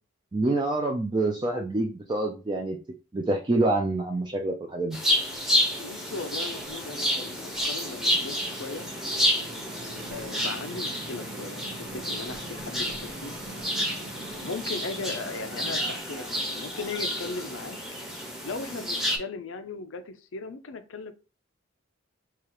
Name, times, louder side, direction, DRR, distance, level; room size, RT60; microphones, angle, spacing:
voice 1, 0.3-2.8 3.1-5.0, right 2 dB, 25° right, 2 dB, 0.4 m, -26 dB
sound 1, 4.9-19.2, equal, ahead, 0.8 m, -30 dB
voice 2, 5.7-8.9 10.1-13.3 14.4-17.8 18.4-21.1, left 3 dB, 85° left, 10 dB, 0.5 m, -37 dB
sound 2, 5.9-16.0, right 1 dB, 65° right, 1.0 m, -44 dB
4.8 x 2.4 x 2.9 m, 0.32 s
head